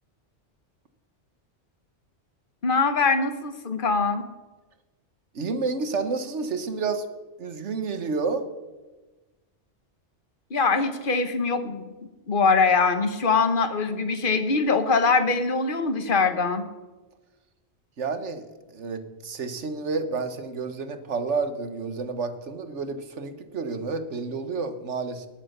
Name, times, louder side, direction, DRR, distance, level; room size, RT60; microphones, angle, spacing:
voice 1, 2.6-4.2 10.5-11.8 12.3-16.7, left 4 dB, 50° left, 9 dB, 1.4 m, -23 dB
voice 2, 5.3-7.0 7.4-8.5 18.0-25.3, right 4 dB, 80° right, 9 dB, 1.6 m, -30 dB
19.0 x 8.3 x 6.7 m, 1.2 s
omnidirectional pair, 1.2 m